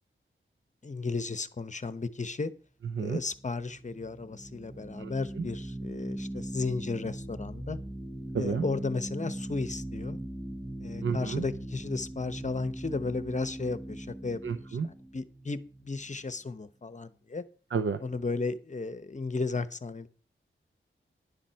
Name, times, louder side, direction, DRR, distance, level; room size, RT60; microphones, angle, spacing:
voice 1, 0.8-2.5 3.0-7.8 8.4-10.2 10.8-14.4 15.1-17.4 18.0-20.1, left 3 dB, 35° left, 12 dB, 0.9 m, -34 dB
sound 1, 3.3-16.4, right 1 dB, 10° right, 0.9 m, -40 dB
voice 2, 5.0-5.5 8.3-8.7 11.0-11.4 14.4-14.9 17.7-18.0, right 5 dB, 70° right, 10 dB, 0.7 m, -31 dB
11.0 x 7.4 x 5.7 m, 0.41 s
wide cardioid pair, 70°, 21 cm